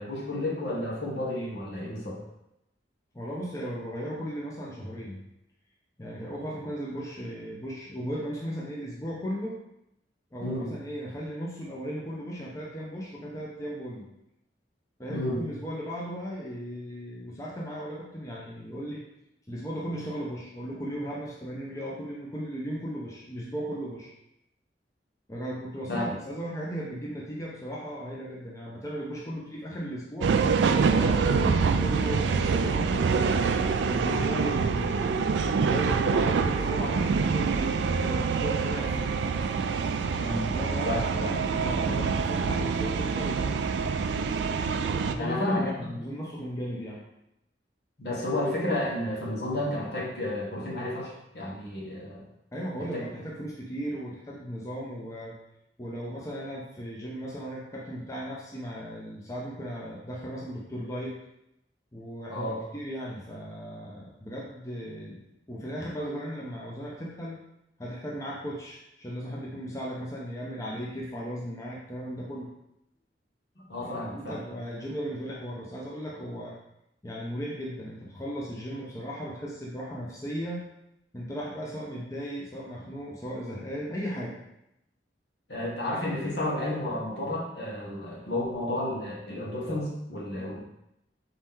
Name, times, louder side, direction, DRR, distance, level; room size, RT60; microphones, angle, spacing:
voice 1, 0.0-2.2 10.4-10.7 15.1-15.4 25.9-26.0 31.2-31.5 40.1-40.5 40.8-41.3 45.2-46.0 48.0-52.2 52.8-53.0 62.3-62.6 73.6-74.4 85.5-90.6, left 1 dB, 70° left, -5 dB, 1.3 m, -31 dB
voice 2, 3.1-5.2 6.0-9.5 10.3-14.1 15.0-19.0 19.5-24.1 25.3-30.4 30.9-33.2 33.5-35.3 35.7-39.1 40.5-41.3 41.6-43.5 45.1-47.0 52.5-55.4 55.8-61.1 61.9-65.2 65.5-67.4 67.8-72.5 73.8-76.6 77.0-80.7 81.1-84.4, equal, 20° left, -4 dB, 0.6 m, -36 dB
sound 1, 30.2-45.1, right 5 dB, 85° right, 0.3 m, -26 dB
4.1 x 3.0 x 3.7 m, 0.83 s
head